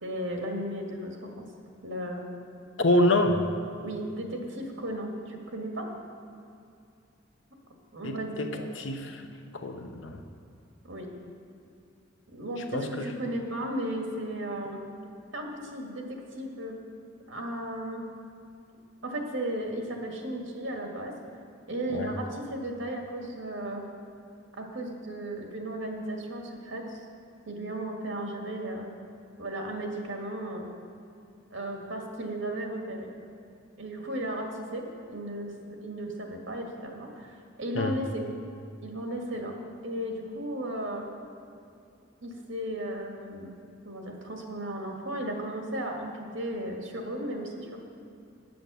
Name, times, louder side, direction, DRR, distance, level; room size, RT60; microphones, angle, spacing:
voice 1, 0.0-1.3 1.8-2.2 3.8-5.9 7.9-8.7 10.8-11.1 12.3-14.8 15.3-16.8 17.3-18.1 19.0-21.1 21.7-23.9 24.6-27.0 27.5-28.9 29.4-30.7 31.5-33.1 33.8-34.8 35.1-38.2 38.8-39.5 39.8-41.1 42.2-43.5 43.8-47.8, right 1 dB, 75° right, 1 dB, 1.8 m, -35 dB
voice 2, 2.8-3.4 8.0-8.5 8.8-9.2 9.5-10.2 12.7-13.1 21.9-22.1 37.7-37.9, left 1 dB, 75° left, 5 dB, 0.9 m, -26 dB
9.1 x 7.8 x 6.8 m, 2.5 s
head